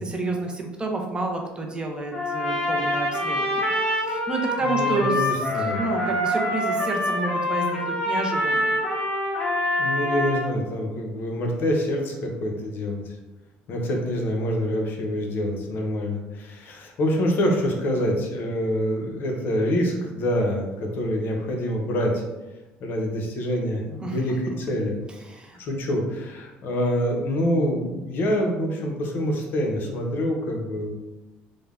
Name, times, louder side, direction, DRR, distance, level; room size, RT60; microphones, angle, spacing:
voice 1, 0.0-8.7 24.0-24.5 25.2-25.6, right 3 dB, 20° right, 2 dB, 0.4 m, -30 dB
Trumpet, 2.1-10.5, left 1 dB, 25° left, 0.9 m, -25 dB
voice 2, 4.6-5.8 9.8-13.1 13.7-22.2 22.8-24.9 25.6-30.9, equal, 55° left, 1 dB, 0.6 m, -26 dB
3.2 x 2.0 x 2.3 m, 1.1 s
supercardioid pair, 95°, 4 cm